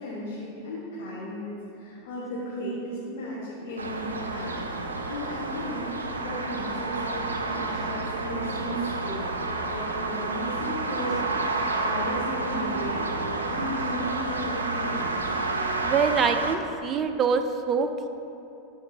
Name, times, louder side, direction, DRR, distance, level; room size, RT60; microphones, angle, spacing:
voice 1, 0.0-15.1, equal, 65° left, -8 dB, 1.5 m, -35 dB
sound 1, 3.8-16.6, right 3 dB, 90° right, 0.5 m, -30 dB
voice 2, 15.8-18.1, right 5 dB, 30° right, 7 dB, 0.5 m, -25 dB
12.5 x 4.6 x 2.8 m, 2.8 s
hypercardioid pair, 95°, 0 cm